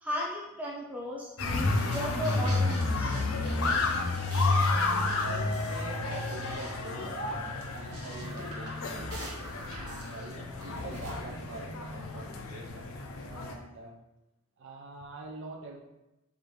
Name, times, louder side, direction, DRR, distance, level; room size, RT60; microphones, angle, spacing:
voice 1, 0.0-3.4, equal, 5° right, -4 dB, 0.7 m, -36 dB
sound 1, 1.4-13.5, left 3 dB, 60° left, 0.5 m, -31 dB
sound 2, 1.6-11.2, right 1 dB, 90° right, 0.8 m, -43 dB
voice 2, 4.6-9.2 9.7-14.0 14.6-15.8, right 2 dB, 55° right, 1 dB, 0.4 m, -45 dB
4.8 x 2.5 x 3.2 m, 0.95 s
head